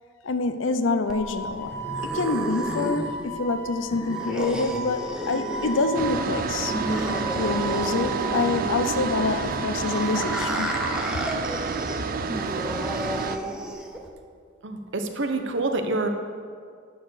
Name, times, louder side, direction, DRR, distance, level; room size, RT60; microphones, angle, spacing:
voice 1, 0.2-1.7 2.0-6.7 7.4-10.7 11.1-11.2, left 3 dB, 70° left, 9 dB, 0.6 m, -26 dB
Wind instrument woodwind instrument, 1.0-10.9, right 4 dB, 30° right, 1.1 m, -35 dB
sound 1, 1.1-14.1, equal, 5° right, 0.8 m, -32 dB
sound 2, 5.9-13.4, right 4 dB, 45° right, 0.4 m, -30 dB
voice 2, 14.6-16.1, right 2 dB, 65° right, 5 dB, 0.9 m, -27 dB
11.0 x 4.7 x 7.9 m, 2.1 s
head